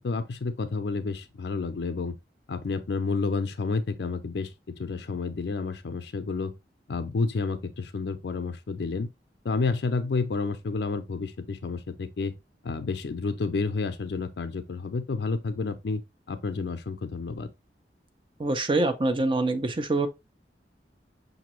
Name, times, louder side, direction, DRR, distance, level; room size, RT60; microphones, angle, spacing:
voice 1, 0.0-2.2 2.5-6.5 6.9-9.1 9.4-12.3 12.6-16.0 16.3-17.5, left 4 dB, 65° left, 0.5 m, -30 dB
voice 2, 18.4-20.1, right 2 dB, 30° right, 0.6 m, -25 dB
5.8 x 2.7 x 3.0 m
head